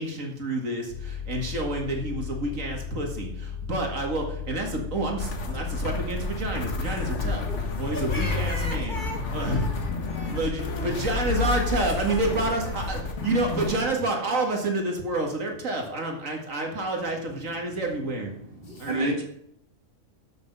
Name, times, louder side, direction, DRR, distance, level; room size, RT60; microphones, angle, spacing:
voice 1, 0.0-7.5 7.8-8.9 9.3-9.7 10.2-18.3 18.8-19.1, right 2 dB, 75° right, 2 dB, 2.3 m, -29 dB
sound 1, 0.9-10.3, left 7 dB, 85° left, 1.4 m, -36 dB
sound 2, 5.2-13.8, left 3 dB, 65° left, 1.5 m, -30 dB
voice 2, 7.4-11.2 12.0-13.7 18.3-18.9, left 1 dB, 35° left, 2 dB, 2.1 m, -41 dB
voice 3, 17.3-19.3, right 1 dB, 45° right, 2 dB, 2.0 m, -33 dB
12.0 x 6.1 x 5.4 m, 0.74 s
omnidirectional pair, 1.4 m